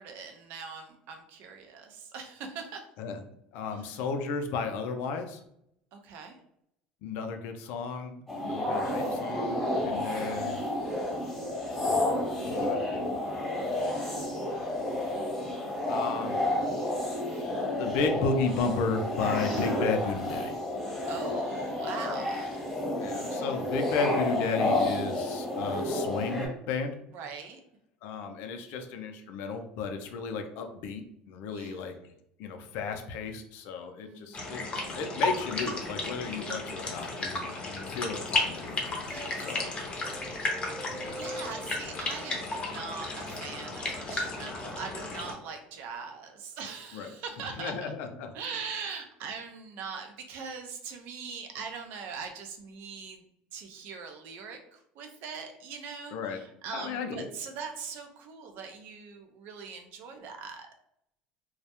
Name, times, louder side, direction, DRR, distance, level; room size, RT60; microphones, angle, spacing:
voice 1, 0.0-2.9 3.7-3.9 5.9-6.4 9.9-10.4 21.1-22.8 27.1-27.6 31.5-31.9 34.0-34.6 39.1-40.3 40.8-47.9 48.3-53.2 53.5-60.7, right 5 dB, 70° right, 5 dB, 0.5 m, -42 dB
voice 2, 3.5-5.4 7.0-10.6 11.9-13.8 15.9-16.4 17.8-20.6 23.0-27.0 28.0-31.9 32.4-34.7 34.9-39.7 40.9-41.2 46.9-47.1 47.6-48.3 56.1-56.4 56.7-57.3, left 4 dB, 70° left, 6 dB, 0.4 m, -34 dB
sound 1, 8.3-26.5, left 1 dB, 10° left, 1.0 m, -31 dB
sound 2, 34.3-45.3, left 2 dB, 30° left, 0.6 m, -34 dB
sound 3, 39.1-43.4 44.1-45.4, right 1 dB, 10° right, 0.5 m, -46 dB
2.3 x 2.0 x 2.8 m, 0.74 s
supercardioid pair, 90°, 3 cm